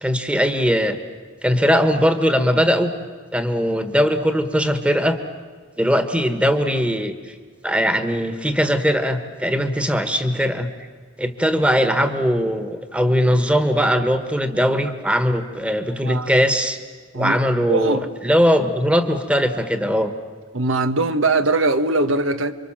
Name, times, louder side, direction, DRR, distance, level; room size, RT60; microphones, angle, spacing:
voice 1, 0.0-1.0 1.4-2.9 3.3-5.2 5.8-7.3 7.6-10.7 11.2-16.8 17.1-20.1, equal, 5° right, 1.5 m, -20 dB
voice 2, 15.9-16.3 17.1-17.4 17.7-18.1 20.5-22.5, right 3 dB, 80° right, 1.3 m, -21 dB
29.0 x 25.0 x 7.4 m
head